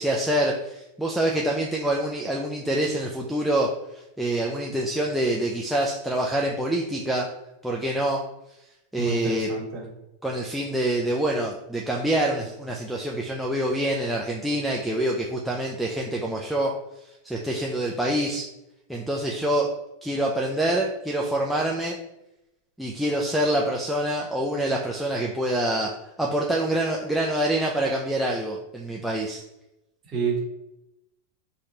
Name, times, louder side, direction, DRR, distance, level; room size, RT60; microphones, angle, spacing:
voice 1, 0.0-7.3 7.6-8.2 8.9-9.5 10.2-16.7 17.2-18.5 18.9-19.7 20.0-22.0 22.8-25.9 26.2-29.4, right 1 dB, ahead, -2 dB, 0.3 m, -26 dB
voice 2, 9.0-9.9 30.1-30.4, right 4 dB, 25° right, -4 dB, 1.4 m, -28 dB
4.1 x 3.1 x 2.7 m, 0.90 s
supercardioid pair, 155°, 0 cm